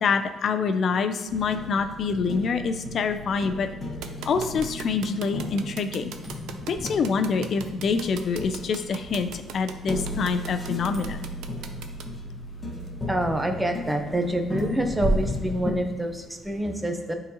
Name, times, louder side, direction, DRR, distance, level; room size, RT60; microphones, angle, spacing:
voice 1, 0.0-3.7 4.2-6.1 6.6-11.3, left 5 dB, 60° left, 8 dB, 0.4 m, -26 dB
sound 1, 1.3-15.7, left 1 dB, 30° left, 1.0 m, -36 dB
sound 2, 4.0-12.0, right 8 dB, 90° right, 0.4 m, -39 dB
sound 3, 6.1-16.6, right 1 dB, 40° right, 1.4 m, -36 dB
voice 2, 13.1-17.2, right 1 dB, 10° right, 4 dB, 0.8 m, -27 dB
8.9 x 3.9 x 2.8 m, 1.2 s
cardioid pair, 90°, 0 cm